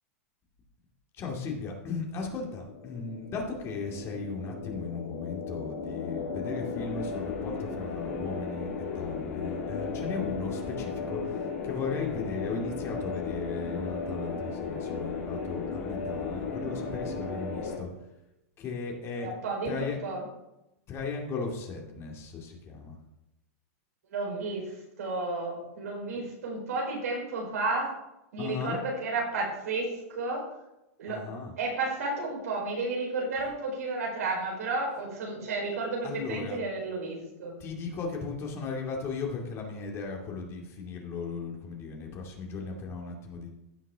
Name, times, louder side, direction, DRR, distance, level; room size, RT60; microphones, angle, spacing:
voice 1, 1.1-17.9 18.6-19.3 19.7-20.0 20.9-23.0 28.4-28.8 31.1-31.5 36.0-36.6 37.6-43.6, left 4 dB, 35° left, 0 dB, 2.4 m, -36 dB
sound 1, 2.3-17.8, left 5 dB, 70° left, 3.2 m, -35 dB
voice 2, 19.2-20.2 24.1-24.7 25.0-27.9 28.3-30.5 31.0-31.2 31.6-37.6, right 3 dB, 85° right, -1 dB, 4.2 m, -32 dB
15.5 x 5.9 x 3.6 m, 0.90 s
hypercardioid pair, 125°, 8 cm